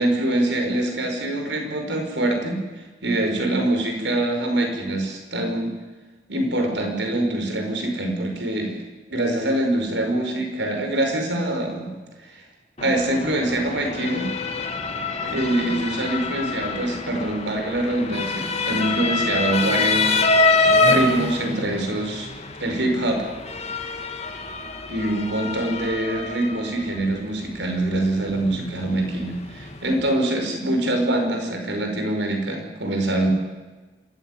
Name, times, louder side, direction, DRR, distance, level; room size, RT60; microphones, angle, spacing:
voice 1, 0.0-2.6 3.0-5.7 6.3-8.8 9.1-12.0 12.3-12.4 12.8-14.3 15.2-20.3 20.6-22.3 22.6-23.3 24.9-33.3, right 1 dB, 85° right, 3 dB, 5.5 m, -24 dB
Motor vehicle (road) / Siren, 12.8-30.2, left 3 dB, 35° left, 1.9 m, -26 dB
26.5 x 14.5 x 9.4 m, 1.3 s
head